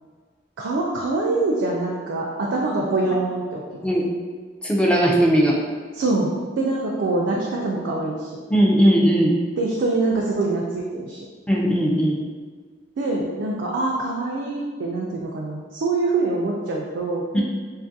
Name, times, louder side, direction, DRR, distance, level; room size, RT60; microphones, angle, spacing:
voice 1, 0.6-3.6 5.9-8.3 9.6-11.2 13.0-17.2, right 2 dB, 85° right, -3 dB, 0.3 m, -24 dB
voice 2, 4.6-5.6 8.5-9.4 11.5-12.2 17.3-17.4, equal, 5° left, -2 dB, 0.3 m, -18 dB
2.5 x 2.4 x 2.5 m, 1.5 s
head